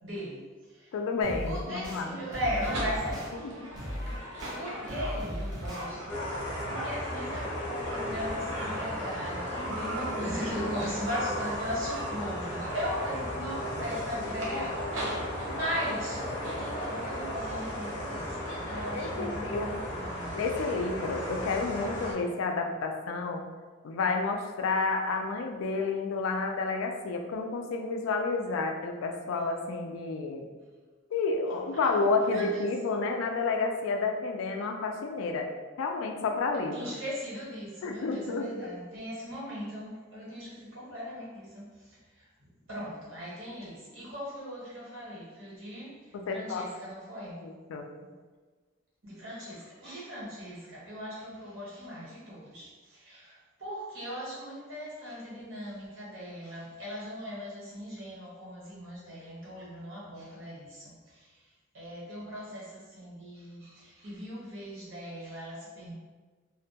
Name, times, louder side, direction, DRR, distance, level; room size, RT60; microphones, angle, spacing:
voice 1, 0.0-0.9 1.5-3.7 4.5-6.3 6.6-20.4 31.7-32.6 36.7-42.3 42.7-47.5 49.0-65.9, equal, 85° right, -7 dB, 1.0 m, -38 dB
voice 2, 0.9-2.1 3.4-3.5 19.0-19.7 20.3-23.4 23.8-30.4 31.1-35.5 35.8-36.9 37.8-38.7 46.1-46.7 47.4-47.9, left 4 dB, 90° left, 4 dB, 0.3 m, -30 dB
sound 1, 1.2-2.0 2.3-3.3 3.7-4.6 4.9-5.8, equal, 20° right, 0.5 m, -37 dB
sound 2, 1.9-18.9, right 1 dB, 65° right, 0.6 m, -40 dB
sound 3, 6.1-22.1, equal, 40° left, 0.6 m, -36 dB
2.2 x 2.1 x 2.7 m, 1.4 s
head